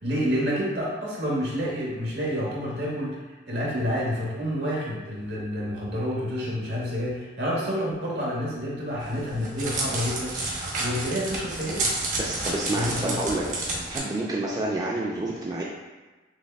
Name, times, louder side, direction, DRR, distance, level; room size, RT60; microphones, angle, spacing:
voice 1, 0.0-3.2 3.5-10.4 10.8-13.2, equal, 65° right, -5 dB, 1.0 m, -29 dB
Crackle, 9.0-14.0, right 2 dB, 45° right, 0.7 m, -30 dB
voice 2, 12.2-15.6, right 2 dB, 20° right, -5 dB, 0.3 m, -29 dB
5.9 x 2.2 x 2.3 m, 1.2 s
head